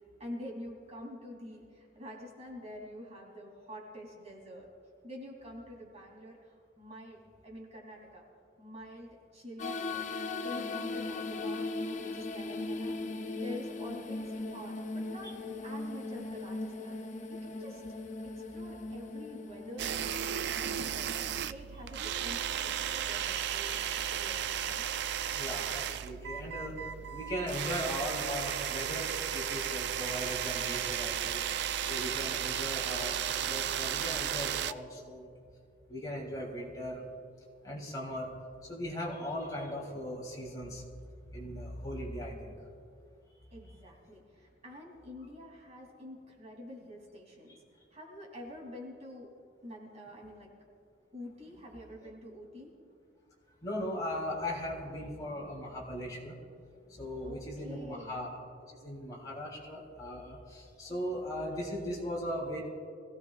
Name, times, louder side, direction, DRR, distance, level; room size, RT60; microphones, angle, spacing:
voice 1, 0.2-4.7 5.0-8.2 8.6-11.6 12.1-13.0 13.3-15.3 15.6-17.0 17.3-17.8 18.2-20.4 20.9-23.8 24.1-24.8 43.5-47.6 47.9-49.3 49.6-50.5 51.1-52.7 57.2-58.2, left 1 dB, 35° right, -2 dB, 3.1 m, -47 dB
sound 1, 9.6-21.4, left 2 dB, 40° left, 0.6 m, -38 dB
sound 2, 19.8-34.7, right 9 dB, 60° right, 0.4 m, -34 dB
voice 2, 25.3-26.7 27.1-35.3 35.9-37.0 37.6-38.3 38.7-40.8 41.3-42.5 53.6-56.3 56.9-58.4 58.8-62.6, equal, 20° left, -4 dB, 3.6 m, -38 dB
25.0 x 16.0 x 2.5 m, 2.3 s
head